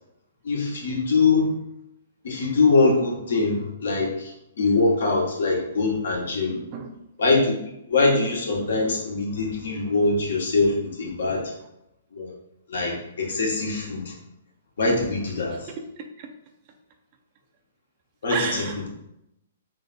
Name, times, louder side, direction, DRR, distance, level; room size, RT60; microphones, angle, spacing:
voice 1, 0.4-1.5 2.2-6.6 7.2-7.5 7.9-11.5 12.1-12.3 12.7-14.1 14.8-15.7 18.2-18.6, left 3 dB, 75° left, -2 dB, 1.5 m, -23 dB
voice 2, 6.5-7.0 15.5-16.3 18.3-18.8, right 6 dB, 40° right, 4 dB, 0.5 m, -33 dB
3.4 x 3.4 x 4.2 m, 0.82 s
hypercardioid pair, 135°, 0 cm